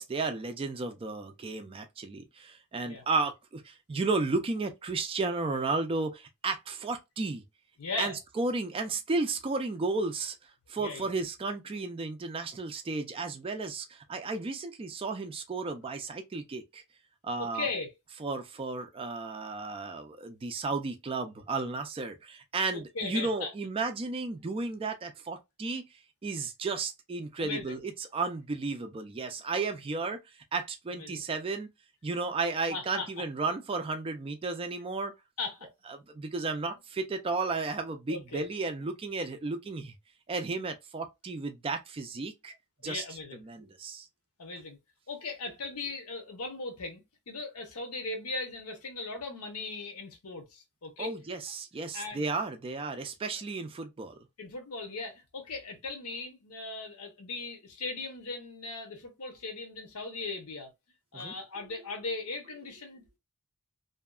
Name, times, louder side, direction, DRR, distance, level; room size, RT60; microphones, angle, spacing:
voice 1, 0.0-7.4 8.0-10.4 10.7-16.8 17.2-17.7 18.2-25.9 26.2-30.2 30.5-31.7 32.0-35.1 35.9-39.9 40.3-42.5 42.8-43.0 43.4-44.1 51.0-54.2 61.1-61.4, right 3 dB, 25° right, 0.3 m, -33 dB
voice 2, 7.8-8.2 10.8-11.1 17.4-17.9 22.7-23.5 27.4-27.8 30.9-31.2 32.7-33.1 35.4-35.7 38.1-38.4 42.8-43.4 44.4-44.8 45.1-51.1 51.9-52.2 54.4-60.7 61.1-63.0, left 3 dB, 75° left, 0.8 m, -38 dB
2.7 x 2.3 x 2.2 m
head